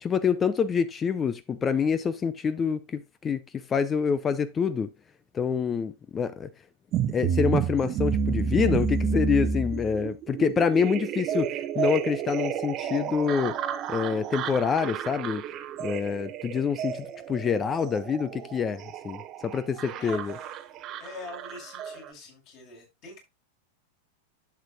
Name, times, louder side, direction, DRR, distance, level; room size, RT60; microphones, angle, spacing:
voice 1, 0.0-4.9 5.3-6.5 7.1-13.6 13.9-15.4 15.8-20.3, left 6 dB, 20° left, 0.6 m, -26 dB
sound 1, 6.9-22.1, right 7 dB, 35° right, 0.9 m, -31 dB
voice 2, 20.0-20.6 21.0-23.3, left 3 dB, 40° left, 6.1 m, -44 dB
11.5 x 8.1 x 2.4 m
figure-of-eight pair, 90°, 0 cm